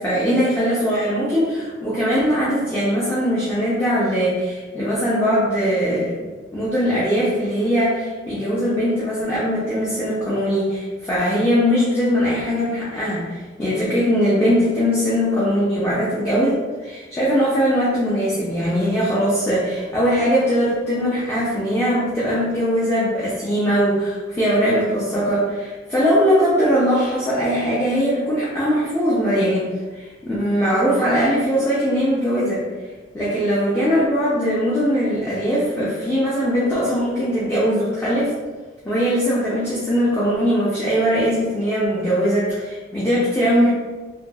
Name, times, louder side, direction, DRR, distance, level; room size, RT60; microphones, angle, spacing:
voice 1, 0.0-6.2 6.5-29.7 29.9-32.6 33.1-38.3 38.8-43.7, equal, 15° left, -9 dB, 0.5 m, -20 dB
2.9 x 2.6 x 2.3 m, 1.3 s
head